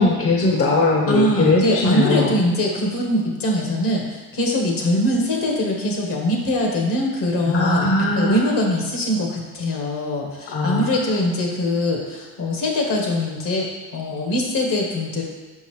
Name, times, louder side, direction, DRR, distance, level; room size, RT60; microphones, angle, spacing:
voice 1, 0.0-2.3 7.5-8.4 10.5-10.9, left 3 dB, 40° left, 0 dB, 0.8 m, -19 dB
voice 2, 1.1-13.7 13.9-15.2, left 1 dB, 70° left, 0 dB, 1.5 m, -22 dB
5.5 x 5.3 x 3.2 m, 1.3 s
cardioid pair, 85°, 34 cm